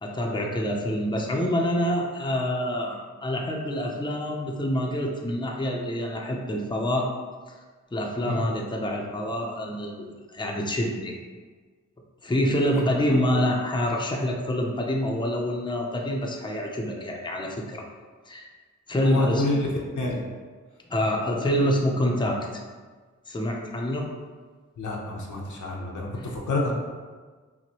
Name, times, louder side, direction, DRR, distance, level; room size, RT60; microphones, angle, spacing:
voice 1, 0.0-7.1 7.5-7.6 7.9-11.2 12.2-17.8 18.3-18.5 18.9-19.4 20.9-22.6 23.3-24.1 26.2-26.3, equal, 15° left, 0 dB, 0.5 m, -26 dB
voice 2, 19.0-19.7 19.9-20.2 24.8-26.7, left 2 dB, 85° left, -2 dB, 0.8 m, -28 dB
5.9 x 2.1 x 2.9 m, 1.5 s
wide cardioid pair, 70°, 30 cm